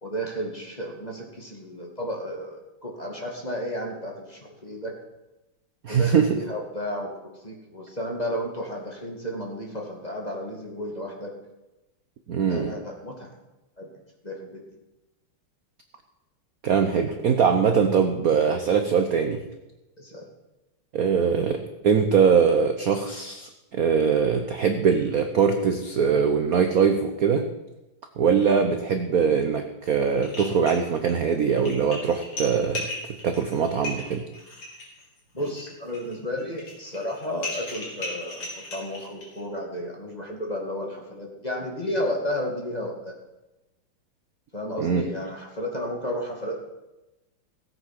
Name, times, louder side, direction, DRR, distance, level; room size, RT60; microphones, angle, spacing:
voice 1, 0.0-4.9 5.9-7.1 7.4-11.3 12.5-13.3 13.8-13.9 14.2-14.6 20.0-20.2 35.3-43.2 44.5-46.6, equal, 20° left, 0 dB, 2.2 m, -32 dB
voice 2, 5.8-6.3 12.3-12.7 16.6-19.4 20.9-27.5 28.2-32.9 33.2-34.2 44.8-45.0, right 6 dB, 55° right, 6 dB, 1.1 m, -22 dB
sound 1, 29.8-29.9 30.2-31.1 31.5-39.4, left 2 dB, 90° left, 4.5 m, -37 dB
17.0 x 8.4 x 5.9 m, 1.0 s
omnidirectional pair, 2.4 m